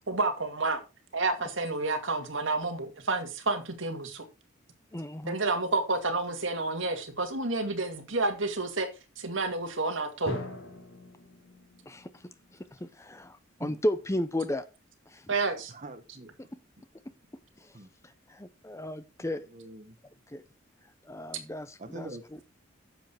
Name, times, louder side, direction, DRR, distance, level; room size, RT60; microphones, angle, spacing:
voice 1, 0.1-0.8 1.1-4.2 5.3-8.9 9.2-10.4 15.3-15.7, right 3 dB, 65° right, 2.3 m, -30 dB
voice 2, 4.9-5.4 11.9-14.7 15.1-15.3 16.5-16.6 17.6-19.5 20.3-20.4 20.8-22.4, left 1 dB, 15° left, 0.7 m, -35 dB
Drum, 10.3-14.0, left 1 dB, 85° left, 3.9 m, -42 dB
voice 3, 15.7-16.3 17.7-17.9 19.5-20.0 21.8-22.2, right 1 dB, 35° right, 1.2 m, -43 dB
10.0 x 7.5 x 4.6 m
head